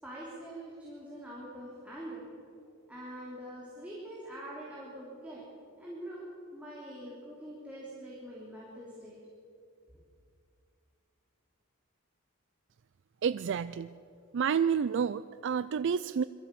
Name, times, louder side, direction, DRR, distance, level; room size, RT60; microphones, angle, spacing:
voice 1, 0.0-2.3 2.9-5.4 5.8-6.3 6.5-9.2, right 1 dB, 5° right, -6 dB, 3.8 m, -44 dB
voice 2, 13.2-13.9 14.3-16.2, right 7 dB, 60° right, 14 dB, 0.4 m, -29 dB
22.5 x 14.0 x 8.5 m, 2.5 s
head